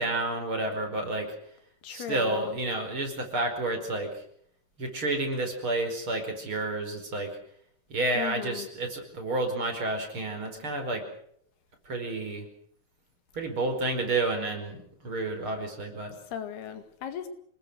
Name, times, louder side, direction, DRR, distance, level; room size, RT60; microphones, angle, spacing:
voice 1, 0.0-1.3 1.9-4.2 4.8-7.3 7.9-11.1 11.9-12.5 13.3-16.1, right 2 dB, 35° right, 4 dB, 5.3 m, -30 dB
voice 2, 1.8-2.6 8.2-8.7 16.3-17.3, left 9 dB, 80° left, 9 dB, 4.2 m, -37 dB
28.0 x 20.0 x 6.4 m, 0.66 s
omnidirectional pair, 4.4 m